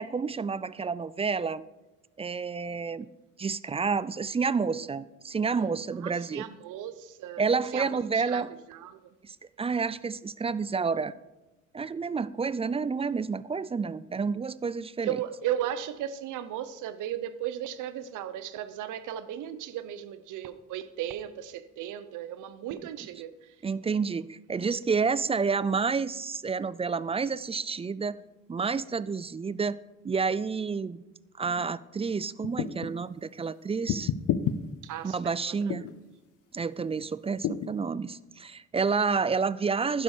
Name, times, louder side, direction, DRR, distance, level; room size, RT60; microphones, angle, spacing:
voice 1, 0.0-1.6 2.2-3.1 3.4-6.4 7.4-8.5 9.2-11.1 11.7-15.2 23.6-28.2 28.5-29.8 30.0-31.0 31.4-34.1 35.0-35.8 36.5-40.0, right 5 dB, 20° right, 0.3 m, -29 dB
voice 2, 6.0-7.4 7.7-8.4 8.7-9.0 15.0-23.5 34.8-35.7, right 11 dB, 85° right, 0.8 m, -36 dB
sound 1, 32.4-32.9 33.9-34.6 35.7-36.0 37.4-37.7, left 9 dB, 80° left, 0.7 m, -29 dB
11.5 x 10.0 x 4.9 m
cardioid pair, 90°, 30 cm